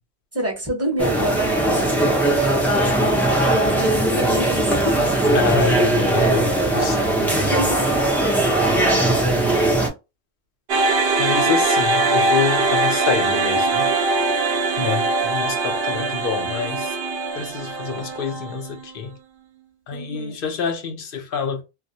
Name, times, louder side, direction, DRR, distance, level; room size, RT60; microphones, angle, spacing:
voice 1, 0.3-1.7 2.0-4.9 7.3-7.9 19.9-20.4, right 1 dB, 15° right, 0.8 m, -29 dB
sound 1, 1.0-9.9, right 1 dB, ahead, 0.4 m, -19 dB
voice 2, 5.3-7.0 11.2-13.9 14.8-16.9 17.3-19.2 19.9-21.6, left 6 dB, 60° left, 0.7 m, -26 dB
sound 2, 10.7-19.0, right 3 dB, 65° right, 0.8 m, -22 dB
2.3 x 2.1 x 2.6 m
omnidirectional pair, 1.1 m